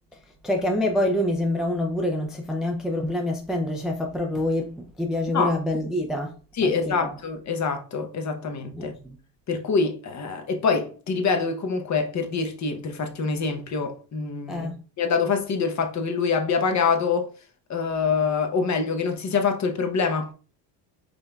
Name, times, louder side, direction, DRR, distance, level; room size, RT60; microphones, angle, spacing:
voice 1, 0.4-6.3 6.6-7.2 8.7-9.2 14.5-14.8, left 1 dB, ahead, 0.5 m, -26 dB
voice 2, 6.6-8.9 9.5-14.7 15.0-17.3 17.7-20.3, left 5 dB, 35° left, 0.9 m, -25 dB
5.0 x 3.8 x 2.3 m
cardioid pair, 110°, 48 cm